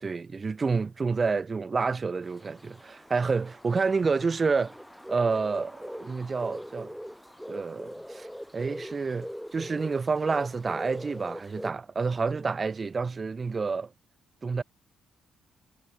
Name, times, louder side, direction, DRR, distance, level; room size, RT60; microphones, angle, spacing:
voice 1, 0.0-4.7 5.1-7.0 7.5-8.3 8.5-13.9 14.4-14.6, right 4 dB, 35° right, 1.5 m, -29 dB
sound 1, 2.2-11.7, equal, ahead, 1.5 m, -42 dB
cardioid pair, 90°, 0 cm